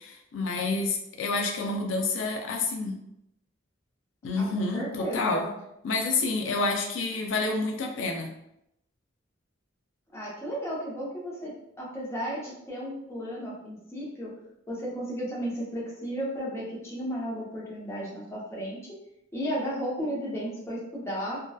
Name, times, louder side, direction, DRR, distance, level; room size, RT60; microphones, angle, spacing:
voice 1, 0.0-3.0 4.2-5.5 5.8-8.3, left 3 dB, 85° left, 3 dB, 0.4 m, -28 dB
voice 2, 4.4-5.5 10.1-14.3 14.7-18.8 19.3-21.4, equal, 15° left, -6 dB, 0.7 m, -34 dB
2.6 x 2.2 x 2.2 m, 0.79 s
head